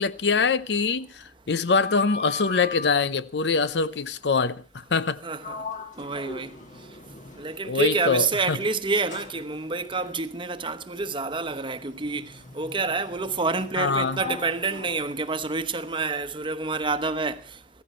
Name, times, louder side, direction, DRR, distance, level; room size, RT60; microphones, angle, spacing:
voice 1, 0.0-5.2 7.6-8.6 13.8-14.2, left 4 dB, 75° left, 0.7 m, -24 dB
Sliding door, 1.5-3.1 4.9-5.1 5.4-7.9 8.5-16.0, left 3 dB, 45° left, 1.6 m, -40 dB
voice 2, 5.2-5.6 6.0-6.5 7.4-12.2 12.5-17.4, right 3 dB, 30° right, 1.0 m, -28 dB
15.5 x 15.5 x 4.4 m
head